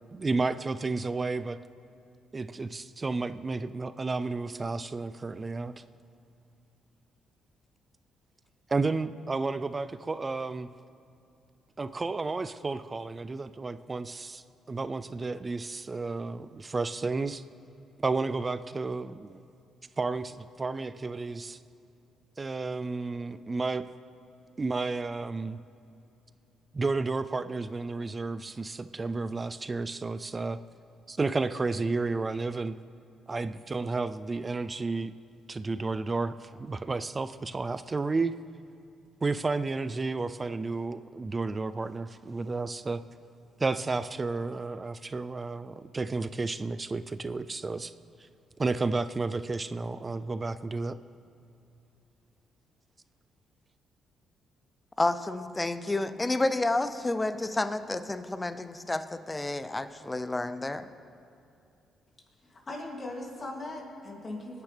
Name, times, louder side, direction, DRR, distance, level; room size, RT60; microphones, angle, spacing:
voice 1, 0.1-1.6 2.3-5.8 8.7-10.7 11.8-17.4 18.0-19.4 20.0-21.6 22.4-23.9 24.6-25.6 26.7-30.6 31.1-32.7 33.3-35.1 35.5-38.4 39.2-43.0 43.6-47.9 48.6-51.0, right 3 dB, 25° right, 13 dB, 0.4 m, -32 dB
voice 2, 55.0-60.9, left 2 dB, 15° left, 12 dB, 0.6 m, -30 dB
voice 3, 62.4-64.6, left 2 dB, 35° left, 0 dB, 2.6 m, -39 dB
23.0 x 9.9 x 3.4 m, 2.6 s
cardioid pair, 90°, 0 cm